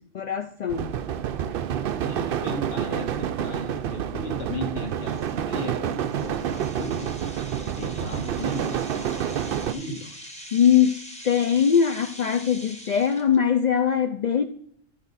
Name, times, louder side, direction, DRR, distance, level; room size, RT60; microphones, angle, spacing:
voice 1, 0.1-0.9 8.2-8.3 10.5-14.4, left 8 dB, 80° left, 9 dB, 0.3 m, -22 dB
sound 1, 0.7-9.7, right 9 dB, 60° right, 0.6 m, -28 dB
voice 2, 2.0-7.1 7.8-9.2 9.6-10.2, equal, 50° left, 1 dB, 2.0 m, -36 dB
sound 2, 3.1-3.2 3.8-4.0 4.4-4.5 5.0-13.4, equal, 5° left, 1.1 m, -44 dB
13.5 x 4.9 x 4.1 m, 0.66 s
omnidirectional pair, 1.3 m